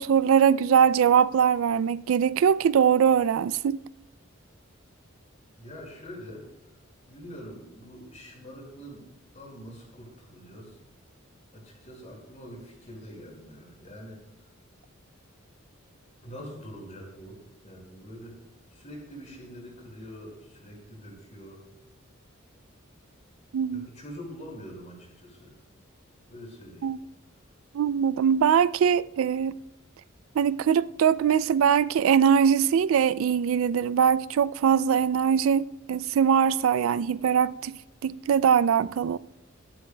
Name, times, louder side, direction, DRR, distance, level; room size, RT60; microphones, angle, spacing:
voice 1, 0.0-3.8 23.5-23.9 26.8-27.0 27.7-29.6 30.4-37.8 38.0-39.2, right 7 dB, 75° right, 0.3 m, -22 dB
voice 2, 5.6-6.5 7.1-9.0 9.3-10.8 11.5-14.2 16.2-18.4 18.7-21.6 23.7-25.5 26.3-26.9, equal, 35° left, 5.3 m, -44 dB
24.5 x 11.5 x 2.2 m
head